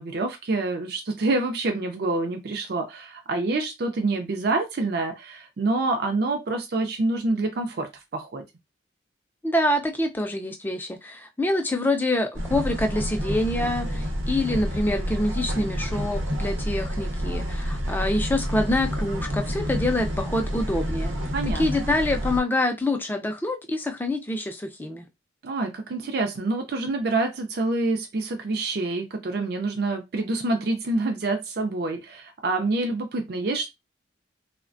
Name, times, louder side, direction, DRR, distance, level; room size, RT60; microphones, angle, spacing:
voice 1, 0.0-8.4 21.3-21.6 25.4-33.7, right 2 dB, 50° right, 0.4 m, -27 dB
voice 2, 9.4-21.1 21.6-25.0, left 1 dB, 10° left, 0.3 m, -26 dB
sound 1, 12.3-22.4, equal, 85° right, 0.8 m, -29 dB
3.2 x 2.1 x 2.5 m
head